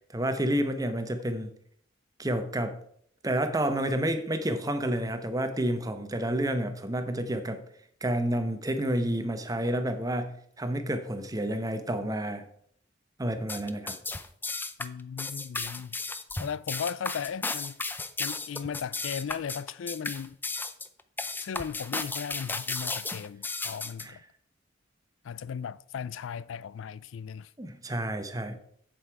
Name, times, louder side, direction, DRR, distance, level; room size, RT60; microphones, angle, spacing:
voice 1, 0.1-1.5 2.2-2.8 3.2-7.6 8.0-12.5 13.2-14.0 24.0-24.2 27.6-28.6, right 1 dB, 20° right, 0.9 m, -30 dB
sound 1, 13.4-24.1, left 3 dB, 10° left, 0.5 m, -34 dB
voice 2, 14.8-16.0 16.4-17.7 18.2-20.4 21.4-24.2 25.2-27.5, left 7 dB, 90° left, 0.4 m, -36 dB
8.0 x 7.9 x 4.7 m
head